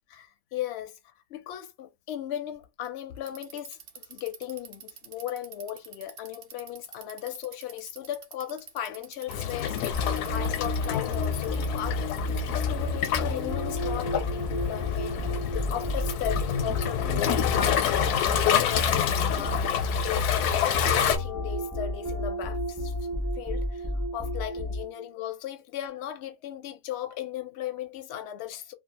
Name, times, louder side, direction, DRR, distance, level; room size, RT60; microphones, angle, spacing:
voice 1, 0.1-12.1 12.5-19.6 20.0-22.9 23.4-28.7, left 11 dB, 65° left, 0.6 m, -37 dB
Bicycle, 3.2-12.0, right 7 dB, 65° right, 0.5 m, -47 dB
Waves surf, 9.3-21.2, left 9 dB, 90° left, 1.1 m, -28 dB
sound 1, 9.9-25.1, left 1 dB, ahead, 0.5 m, -31 dB
2.6 x 2.2 x 2.8 m
omnidirectional pair, 1.6 m